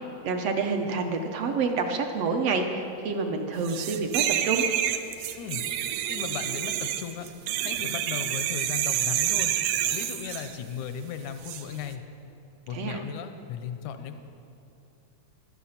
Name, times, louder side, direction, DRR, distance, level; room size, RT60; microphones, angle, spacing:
voice 1, 0.2-4.7 12.7-13.0, right 4 dB, 70° right, 4 dB, 1.8 m, -28 dB
sound 1, 3.7-10.5 11.4-11.6, right 11 dB, 90° right, 2.1 m, -28 dB
voice 2, 6.1-7.3 7.6-9.5 9.9-12.0 12.7-14.2, left 8 dB, 85° left, 8 dB, 2.2 m, -36 dB
14.5 x 12.5 x 5.7 m, 2.8 s
omnidirectional pair, 3.3 m